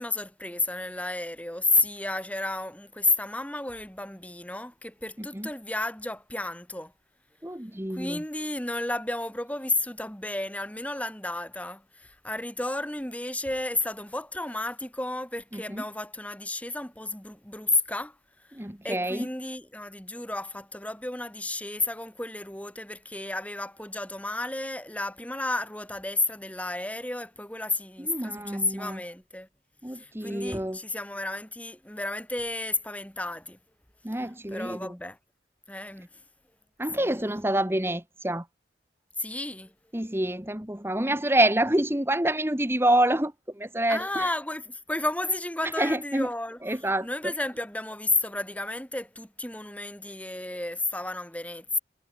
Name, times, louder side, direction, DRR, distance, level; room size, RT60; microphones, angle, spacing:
voice 1, 0.0-6.9 7.9-18.2 18.8-29.5 29.9-33.6 34.5-35.2 35.7-36.1 37.0-37.3 39.2-39.7 43.9-51.8, left 2 dB, 10° left, 4.1 m, -32 dB
voice 2, 7.4-8.2 15.5-15.8 18.6-19.3 28.0-29.0 29.8-30.8 34.0-34.9 36.8-38.4 39.9-43.3 43.6-44.3 45.8-46.3 46.6-47.1, right 1 dB, 15° right, 1.5 m, -27 dB
head